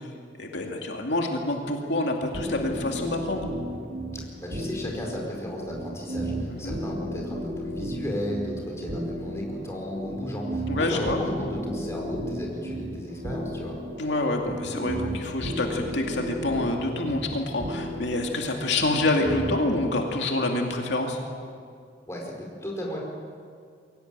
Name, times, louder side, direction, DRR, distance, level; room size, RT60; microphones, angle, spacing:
voice 1, 0.4-3.5 6.5-6.8 10.7-11.2 14.0-21.2, left 2 dB, 75° left, 1 dB, 2.4 m, -27 dB
sound 1, 2.3-19.8, right 1 dB, 50° right, 2.4 m, -34 dB
voice 2, 4.1-13.8 22.1-23.0, left 1 dB, 15° left, -1 dB, 4.8 m, -34 dB
23.0 x 17.5 x 9.0 m, 2.2 s
head